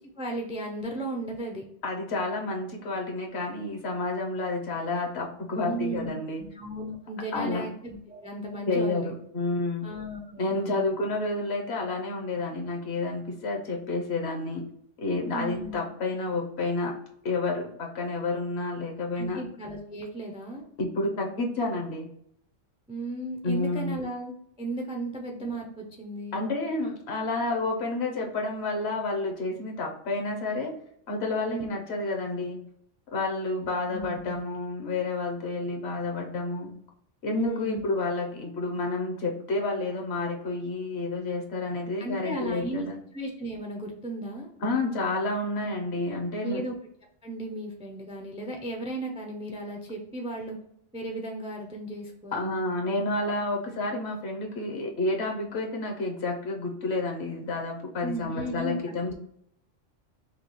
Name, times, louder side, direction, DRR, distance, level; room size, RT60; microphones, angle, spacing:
voice 1, 0.2-1.6 5.6-6.1 6.4-9.1 9.8-10.9 15.3-15.8 19.1-20.6 22.9-26.4 31.5-31.7 33.9-34.4 37.4-37.8 42.0-42.9 43.1-44.5 46.4-46.7 47.2-50.6 50.9-52.6 58.0-59.1, right 1 dB, 10° right, 2 dB, 0.3 m, -35 dB
voice 2, 1.8-6.4 7.3-7.7 8.7-9.9 10.4-14.6 15.0-16.9 17.2-19.4 20.8-22.1 23.4-23.9 26.3-30.7 31.1-32.6 33.1-36.7 37.2-43.0 44.6-46.6 52.3-59.1, left 2 dB, 60° left, 1 dB, 1.1 m, -30 dB
5.3 x 2.3 x 3.1 m, 0.70 s
omnidirectional pair, 1.3 m